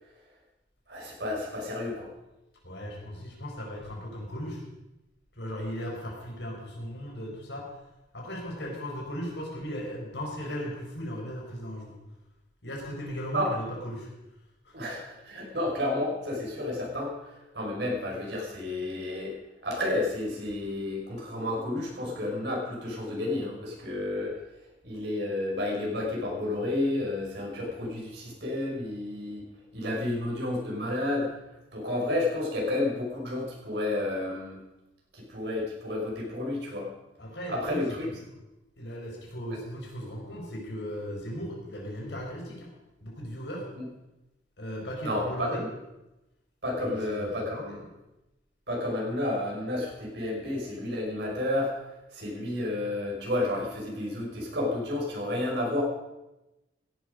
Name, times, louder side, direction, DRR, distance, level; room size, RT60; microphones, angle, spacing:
voice 1, 0.9-2.1 13.3-13.5 14.7-19.3 19.6-24.4 24.8-29.4 29.7-31.3 31.7-34.6 35.1-36.9 37.5-38.1 45.0-45.7 46.6-47.7 48.7-51.7 52.1-55.8, left 1 dB, 65° right, -2 dB, 5.7 m, -31 dB
voice 2, 2.6-4.6 5.4-7.7 8.1-11.9 12.6-14.1 14.6-14.8 37.2-38.4 38.7-42.7 43.0-43.7 44.6-45.7 46.8-47.9, equal, 70° left, -1 dB, 4.9 m, -37 dB
17.0 x 11.5 x 5.2 m, 0.98 s
head